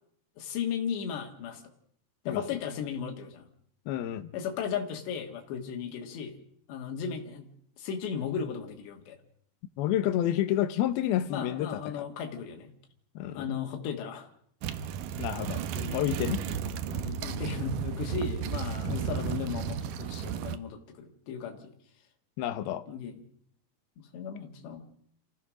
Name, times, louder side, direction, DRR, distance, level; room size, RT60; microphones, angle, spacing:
voice 1, 0.4-1.6 2.3-3.5 4.3-6.4 6.7-7.5 7.8-9.2 11.3-12.7 13.3-14.3 15.7-16.0 16.9-21.7 22.9-23.2 24.0-24.8, left 7 dB, 90° left, 4.0 m, -36 dB
voice 2, 3.9-4.3 9.8-11.7 12.0-12.1 13.2-13.5 15.2-15.6 15.9-16.4 18.9-19.1 22.4-22.9, left 12 dB, 70° left, 2.9 m, -29 dB
sound 1, 14.6-20.6, right 8 dB, 70° right, 2.1 m, -33 dB
27.5 x 16.0 x 6.3 m
omnidirectional pair, 4.8 m